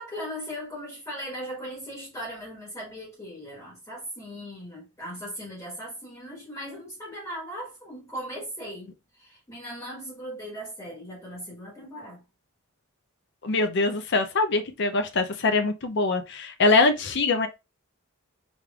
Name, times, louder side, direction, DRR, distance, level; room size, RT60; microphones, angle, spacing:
voice 1, 0.0-12.2, equal, 15° left, 1.5 m, -38 dB
voice 2, 13.4-17.5, left 3 dB, 55° left, 0.6 m, -23 dB
5.1 x 3.2 x 2.4 m
head